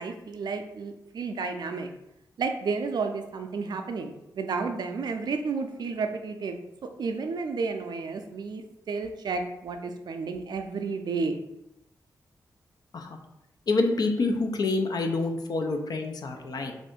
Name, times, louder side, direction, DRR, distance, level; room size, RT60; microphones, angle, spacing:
voice 1, 0.0-1.9 2.4-6.6 7.0-11.4, right 4 dB, 70° right, 6 dB, 0.4 m, -31 dB
voice 2, 13.7-16.7, left 3 dB, 60° left, 4 dB, 0.5 m, -27 dB
2.6 x 2.5 x 3.5 m, 0.86 s
cardioid pair, 60°, 7 cm